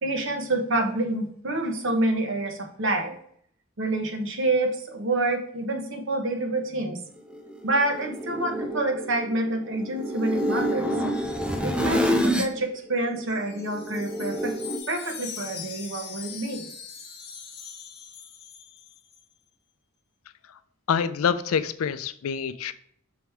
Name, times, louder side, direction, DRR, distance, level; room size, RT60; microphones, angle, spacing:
voice 1, 0.0-3.1 3.8-7.0 7.6-10.9 11.6-14.5 14.9-16.7, right 2 dB, 60° right, 3 dB, 1.1 m, -27 dB
sound 1, 7.3-12.6 12.9-14.8, equal, 5° right, 0.4 m, -28 dB
Wind chime, 13.0-19.2, left 7 dB, 50° left, 1.1 m, -42 dB
voice 2, 20.9-22.7, left 7 dB, 80° left, 13 dB, 0.4 m, -26 dB
6.2 x 3.5 x 4.5 m, 0.63 s
head